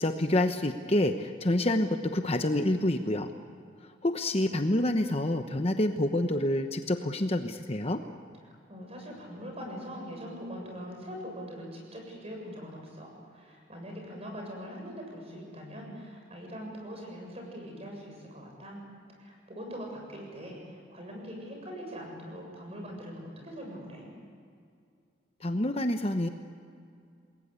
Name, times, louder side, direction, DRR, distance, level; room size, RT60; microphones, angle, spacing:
voice 1, 0.0-3.3 4.0-8.0 25.4-26.3, left 1 dB, 30° left, 6 dB, 1.0 m, -27 dB
voice 2, 8.4-18.8 19.2-24.1, equal, 30° right, 1 dB, 7.2 m, -42 dB
28.0 x 21.0 x 8.4 m, 2.3 s
head